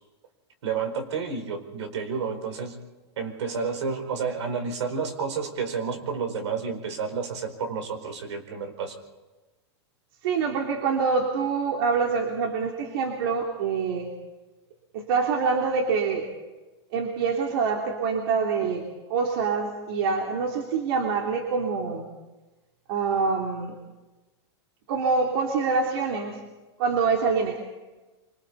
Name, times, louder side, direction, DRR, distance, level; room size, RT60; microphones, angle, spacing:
voice 1, 0.6-2.8 3.2-8.9, right 5 dB, 80° right, 5 dB, 4.7 m, -30 dB
voice 2, 10.2-14.1 14.9-16.3 16.9-18.8 19.1-22.1 22.9-23.7 24.9-26.4 26.8-27.6, right 5 dB, 60° right, 1 dB, 3.3 m, -25 dB
26.0 x 25.0 x 4.2 m, 1.1 s
supercardioid pair, 150°, 15 cm